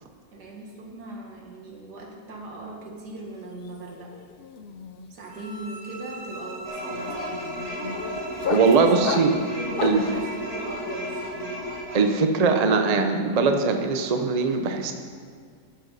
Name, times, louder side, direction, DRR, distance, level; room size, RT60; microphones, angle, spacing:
voice 1, 0.3-4.2 5.1-8.2 8.8-11.6, right 2 dB, 80° right, 0 dB, 2.3 m, -39 dB
sound 1, 3.4-3.7 3.9-10.2, left 7 dB, 80° left, 0.5 m, -34 dB
sound 2, 5.3-11.4, right 2 dB, 60° right, 2.1 m, -42 dB
sound 3, 6.6-12.0, left 1 dB, 60° left, 3.4 m, -34 dB
voice 2, 8.5-9.3 9.8-10.0 11.9-14.9, right 4 dB, 40° right, 5 dB, 0.6 m, -21 dB
13.0 x 10.0 x 4.1 m, 2.1 s
omnidirectional pair, 1.7 m